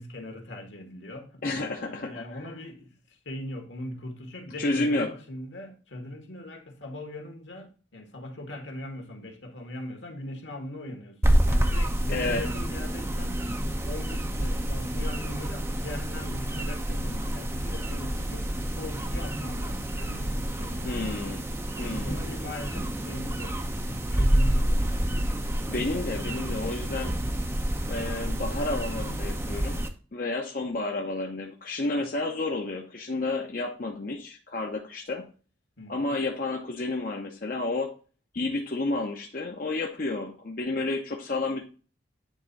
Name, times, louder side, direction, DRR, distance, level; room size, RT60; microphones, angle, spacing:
voice 1, 0.0-11.2 11.5-13.5 13.8-21.4 22.0-25.2 25.7-26.7 32.0-32.1 35.8-36.1, left 1 dB, 75° left, 1.7 m, -40 dB
voice 2, 1.4-2.4 4.6-5.1 12.1-12.4 20.8-21.4 21.8-22.1 25.7-27.2 27.9-35.2 35.9-37.9 38.3-41.7, left 2 dB, 45° left, 0.7 m, -31 dB
sound 1, 11.2-29.9, right 1 dB, 15° right, 0.6 m, -28 dB
9.1 x 3.5 x 4.0 m
head